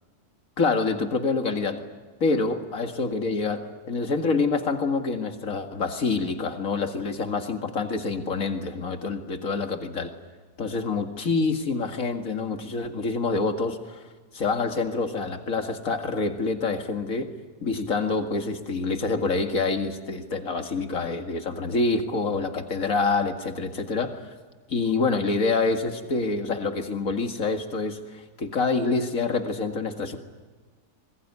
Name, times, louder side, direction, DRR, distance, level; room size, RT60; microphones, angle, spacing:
voice 1, 0.6-1.8 2.2-10.1 10.6-14.0 14.3-17.3 17.6-24.2 24.7-30.2, left 4 dB, 60° left, 5 dB, 2.4 m, -26 dB
26.0 x 21.0 x 9.6 m, 1.4 s
omnidirectional pair, 1.7 m